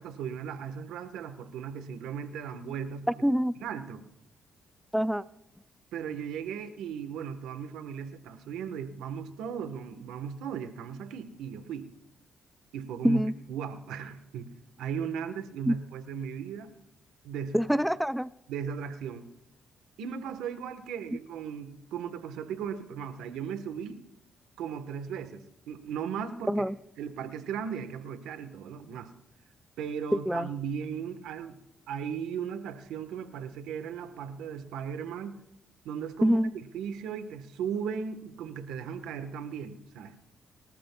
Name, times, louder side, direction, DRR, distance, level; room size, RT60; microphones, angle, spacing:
voice 1, 0.0-3.1 3.6-4.0 5.9-11.9 12.7-13.2 13.5-14.5 14.8-16.7 17.2-17.5 18.5-19.3 20.0-24.0 24.6-26.5 27.0-29.1 29.8-31.6 31.9-35.4 35.8-36.4 36.7-40.2, right 7 dB, 90° right, 10 dB, 1.3 m, -37 dB
voice 2, 3.2-3.5 4.9-5.2 13.0-13.3 15.7-15.8 17.5-18.3 26.5-26.8 30.1-30.5 36.2-36.5, equal, ahead, 15 dB, 0.4 m, -25 dB
30.0 x 14.0 x 2.3 m, 0.82 s
cardioid pair, 90°, 0 cm